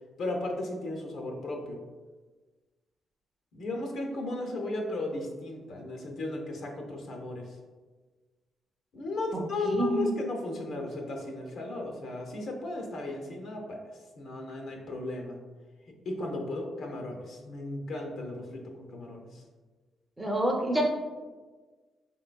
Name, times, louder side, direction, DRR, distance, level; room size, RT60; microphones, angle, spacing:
voice 1, 0.2-1.8 3.5-7.6 8.9-15.4 16.0-19.4, left 2 dB, 65° left, 1 dB, 0.7 m, -35 dB
voice 2, 9.3-10.1 20.2-20.8, right 1 dB, 10° right, 0 dB, 0.5 m, -28 dB
3.9 x 3.7 x 2.2 m, 1.3 s
cardioid pair, 140°, 0 cm